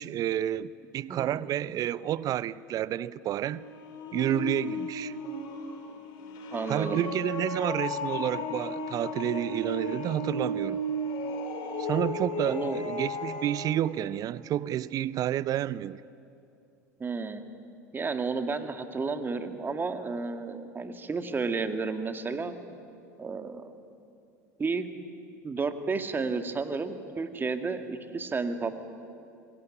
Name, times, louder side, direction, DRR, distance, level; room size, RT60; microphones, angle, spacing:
voice 1, 0.0-3.6 4.1-5.2 6.7-10.8 11.8-16.0, right 11 dB, 40° right, 0.6 m, -30 dB
sound 1, 3.2-13.7, left 1 dB, 50° left, 4.6 m, -35 dB
voice 2, 6.5-7.0 12.5-12.8 17.0-17.4 17.9-22.5 23.2-23.7 24.6-24.9 25.4-28.7, right 4 dB, 20° right, 2.1 m, -32 dB
25.5 x 22.5 x 9.7 m
figure-of-eight pair, 75°, 9 cm